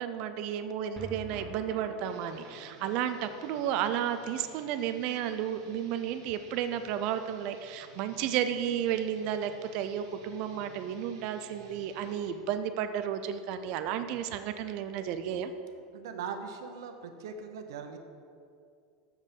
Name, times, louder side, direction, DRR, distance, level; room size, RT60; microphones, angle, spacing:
voice 1, 0.0-15.5, right 9 dB, 40° right, 9 dB, 0.4 m, -32 dB
sound 1, 1.0-7.4 7.7-7.8 8.0-8.1, right 2 dB, 10° right, 0.8 m, -50 dB
sound 2, 2.0-12.4, right 4 dB, 75° right, 1.6 m, -56 dB
voice 2, 15.9-18.0, right 6 dB, 90° right, 6 dB, 0.8 m, -40 dB
7.1 x 6.4 x 5.3 m, 2.4 s
supercardioid pair, 175°, 2 cm